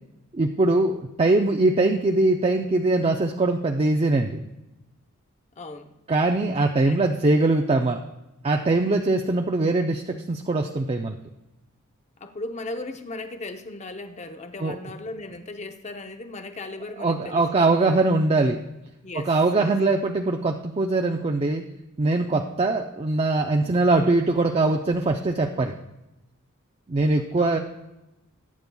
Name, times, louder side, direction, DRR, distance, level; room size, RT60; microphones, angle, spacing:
voice 1, 0.3-4.4 6.1-8.0 8.4-11.2 14.6-14.8 17.0-18.6 19.1-21.6 22.0-25.7 26.9-27.6, right 2 dB, 30° right, 4 dB, 0.5 m, -22 dB
voice 2, 5.6-5.9 6.8-7.0 12.2-17.7 19.0-19.3 19.6-19.7 27.3-27.6, left 2 dB, 35° left, 7 dB, 0.8 m, -37 dB
21.0 x 9.4 x 2.3 m, 0.97 s
head